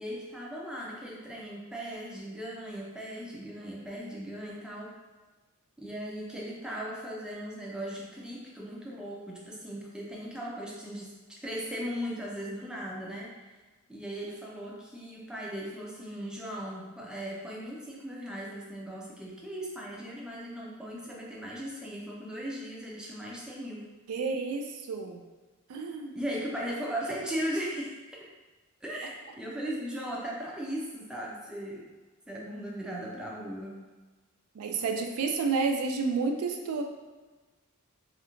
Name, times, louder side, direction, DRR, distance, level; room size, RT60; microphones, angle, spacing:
voice 1, 0.0-4.9 5.8-13.5 13.9-23.9 26.1-28.0 28.8-31.9 32.3-33.8, equal, 5° right, -4 dB, 0.4 m, -38 dB
voice 2, 24.1-25.2 25.7-26.1 34.5-36.8, right 4 dB, 80° right, 4 dB, 0.3 m, -30 dB
2.4 x 2.1 x 2.9 m, 1.3 s
head